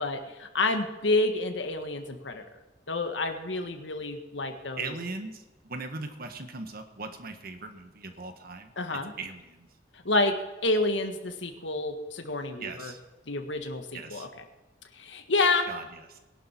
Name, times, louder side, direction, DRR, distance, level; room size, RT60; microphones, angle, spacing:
voice 1, 0.0-2.4 2.9-4.9 8.8-9.1 9.9-10.3 10.6-12.9 13.3-14.4 14.9-15.7, left 2 dB, 75° left, 6 dB, 1.7 m, -29 dB
voice 2, 4.8-5.4 5.7-8.7 9.2-9.7 12.6-13.0 13.9-14.3 15.7-15.8 16.1-16.2, right 3 dB, 55° right, 7 dB, 1.6 m, -39 dB
21.5 x 11.5 x 4.6 m, 1.1 s
head